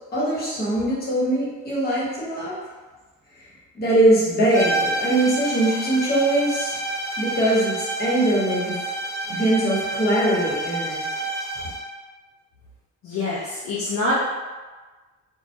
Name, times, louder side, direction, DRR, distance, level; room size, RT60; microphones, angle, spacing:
voice 1, 0.1-2.6 3.7-6.7 7.2-8.8 9.3-11.0, right 1 dB, 30° left, -7 dB, 1.0 m, -21 dB
sound 1, 4.5-11.9, right 2 dB, 10° left, 0.4 m, -29 dB
voice 2, 13.0-14.2, left 2 dB, 70° left, -7 dB, 0.6 m, -25 dB
2.2 x 2.2 x 2.7 m, 1.3 s
cardioid pair, 90°, 30 cm